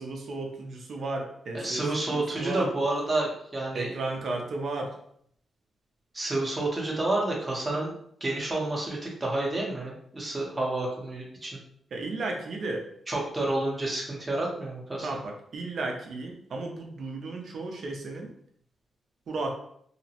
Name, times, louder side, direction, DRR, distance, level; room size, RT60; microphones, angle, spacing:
voice 1, 0.0-2.7 3.7-4.9 11.9-12.9 15.0-18.3 19.3-19.5, right 2 dB, 55° right, 2 dB, 0.5 m, -34 dB
voice 2, 1.5-3.9 6.1-7.9 8.2-11.6 13.1-15.1, right 2 dB, 15° right, -2 dB, 0.6 m, -29 dB
2.7 x 2.0 x 2.7 m, 0.67 s
wide cardioid pair, 155°, 0 cm